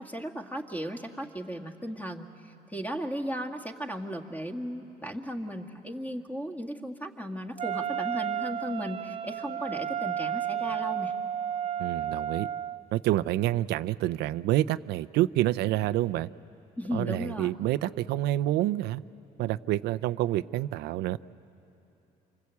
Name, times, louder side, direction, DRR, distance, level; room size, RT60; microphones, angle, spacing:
voice 1, 0.0-11.1 16.8-17.5, equal, 10° left, 3 dB, 2.0 m, -36 dB
Wind instrument woodwind instrument, 7.6-12.8, right 9 dB, 35° right, 0.6 m, -32 dB
voice 2, 11.8-12.5 12.9-16.3 16.9-19.0 19.4-21.2, right 14 dB, 80° right, 14 dB, 0.5 m, -28 dB
28.0 x 25.0 x 8.4 m, 3.0 s
cardioid pair, 110°, 17 cm